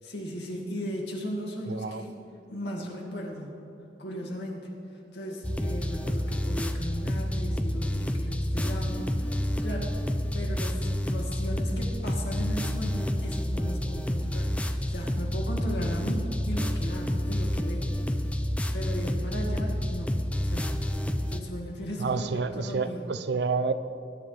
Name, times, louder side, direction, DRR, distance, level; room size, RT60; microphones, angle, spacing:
voice 1, 0.0-2.2 2.5-3.5 4.0-14.6 14.9-18.3 18.7-20.2 20.4-20.8 21.3-23.1, equal, 80° left, -1 dB, 2.2 m, -36 dB
voice 2, 1.7-2.0 22.0-23.7, right 4 dB, 75° right, 12 dB, 0.6 m, -29 dB
sound 1, 5.4-21.4, left 1 dB, 5° left, 0.4 m, -29 dB
20.0 x 10.0 x 3.4 m, 2.7 s
head